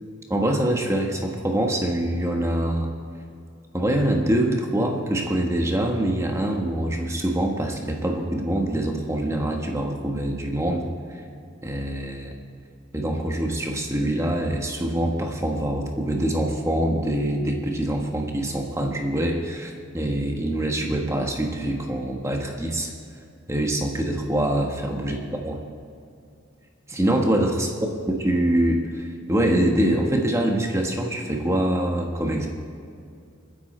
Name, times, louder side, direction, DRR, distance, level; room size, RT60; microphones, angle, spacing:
voice 1, 0.3-2.9 3.7-11.2 11.6-12.3 12.9-22.9 23.5-25.6 26.9-27.7 28.1-32.5, right 1 dB, 15° right, 2 dB, 1.4 m, -24 dB
27.5 x 10.0 x 4.4 m, 2.4 s
head